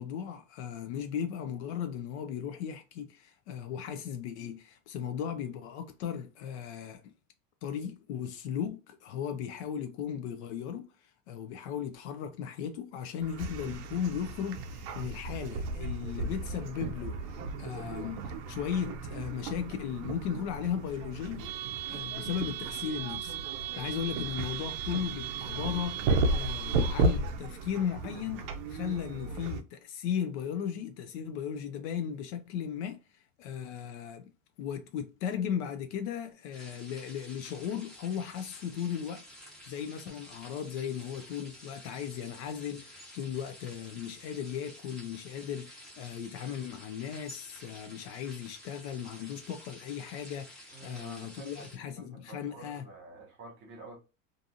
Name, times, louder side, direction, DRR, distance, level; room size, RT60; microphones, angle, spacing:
voice 1, 0.0-7.1 7.6-18.2 18.5-21.5 21.9-26.0 26.3-28.4 28.7-34.3 34.6-52.8, left 8 dB, 55° left, 0.5 m, -36 dB
sound 1, 13.2-29.6, right 3 dB, 55° right, 0.5 m, -34 dB
sound 2, 36.5-51.8, equal, ahead, 0.9 m, -51 dB
voice 2, 50.7-51.7 51.9-54.0, right 2 dB, 25° right, 1.3 m, -49 dB
2.7 x 2.6 x 2.4 m
supercardioid pair, 160°, 41 cm